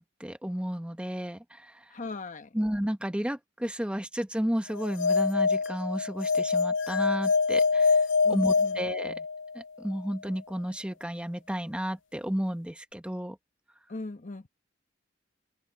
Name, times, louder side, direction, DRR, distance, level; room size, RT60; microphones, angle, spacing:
voice 1, 0.0-1.9 2.5-9.1 9.5-13.4, equal, 5° right, 1.0 m, -32 dB
voice 2, 1.9-2.5 8.2-8.8 9.1-9.2 13.9-14.5, left 3 dB, 45° left, 1.1 m, -39 dB
sound 1, 4.7-9.6, left 4 dB, 75° left, 0.4 m, -25 dB
head